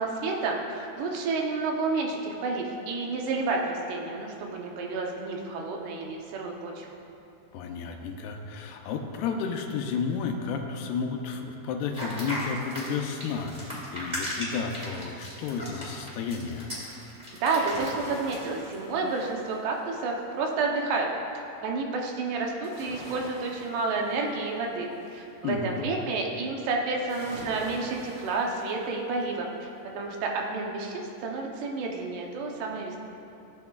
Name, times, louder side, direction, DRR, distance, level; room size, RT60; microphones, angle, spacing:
voice 1, 0.0-6.9 17.4-21.1 21.6-29.7 29.9-33.0, right 3 dB, 80° right, 0 dB, 2.8 m, -30 dB
voice 2, 7.5-16.7 25.4-25.8, left 5 dB, 80° left, 3 dB, 2.5 m, -32 dB
sound 1, 11.9-18.4, equal, 20° right, 1.3 m, -37 dB
sound 2, 17.5-20.3 22.6-25.2 27.1-29.4 29.8-29.9, right 1 dB, 35° right, 2.2 m, -45 dB
16.5 x 8.7 x 2.3 m, 2.7 s
omnidirectional pair, 4.9 m